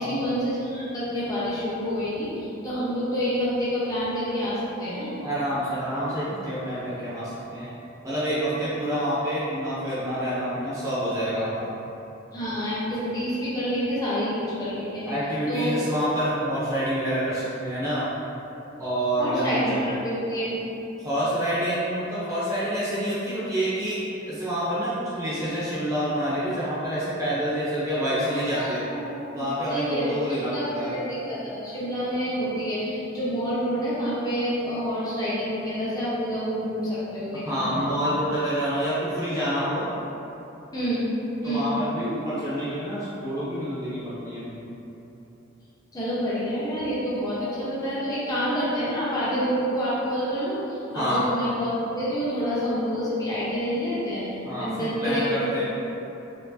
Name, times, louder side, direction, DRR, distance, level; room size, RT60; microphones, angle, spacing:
voice 1, 0.0-5.1 12.3-15.0 15.5-15.8 19.2-20.6 28.6-30.1 30.5-38.0 40.7-41.0 41.4-41.7 45.9-54.3 54.6-55.6, equal, 20° left, -10 dB, 0.9 m, -28 dB
voice 2, 5.2-7.7 8.0-11.7 15.1-18.1 18.8-20.0 21.0-24.0 24.3-28.8 29.3-31.0 37.4-39.9 41.4-44.7 50.9-51.2 54.4-55.6, equal, 15° right, -11 dB, 0.7 m, -27 dB
4.4 x 3.5 x 2.7 m, 3.0 s
head